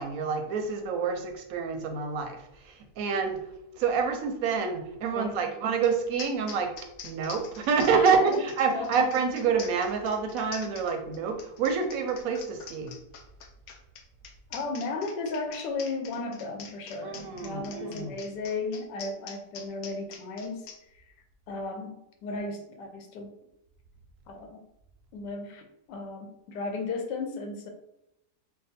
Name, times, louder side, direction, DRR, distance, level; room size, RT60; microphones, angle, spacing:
voice 1, 0.0-3.4 3.8-6.7 7.0-12.9 17.0-18.1, right 5 dB, 70° right, 4 dB, 0.9 m, -27 dB
sound 1, 5.8-5.9 6.2-20.8, left 6 dB, 70° left, 1.0 m, -44 dB
voice 2, 7.9-8.4 8.7-9.0 14.5-20.7 20.9-21.0 21.5-23.4 24.3-24.6 25.1-27.7, left 3 dB, 85° left, 4 dB, 1.3 m, -35 dB
3.5 x 2.2 x 4.1 m, 0.85 s
omnidirectional pair, 1.8 m